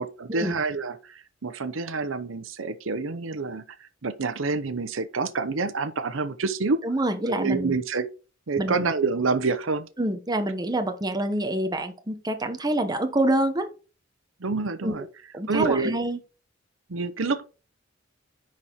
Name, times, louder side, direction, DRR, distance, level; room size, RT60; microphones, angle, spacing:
voice 1, 0.0-6.8 7.3-8.1 8.5-9.9 14.4-15.0 15.5-15.9 16.9-17.4, right 4 dB, 75° right, 0.8 m, -27 dB
voice 2, 6.8-7.7 8.6-8.8 10.0-13.7 14.8-14.9 15.3-16.2, right 1 dB, 20° right, 1.0 m, -26 dB
10.5 x 4.3 x 4.6 m
head